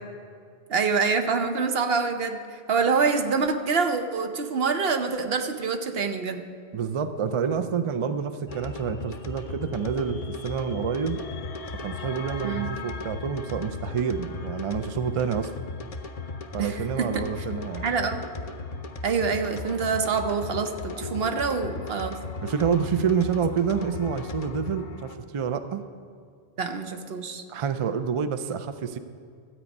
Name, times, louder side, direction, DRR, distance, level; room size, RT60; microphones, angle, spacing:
voice 1, 0.7-6.5 12.4-12.7 16.6-17.4 17.8-18.2 19.0-22.2 26.6-27.4, right 5 dB, 65° right, 7 dB, 1.0 m, -26 dB
voice 2, 6.7-11.2 11.7-15.5 16.5-17.9 22.4-25.8 27.5-29.0, right 6 dB, 45° right, 10 dB, 0.4 m, -28 dB
sound 1, 8.5-25.1, left 3 dB, 40° left, 0.6 m, -37 dB
13.0 x 8.4 x 5.3 m, 2.2 s
omnidirectional pair, 1.1 m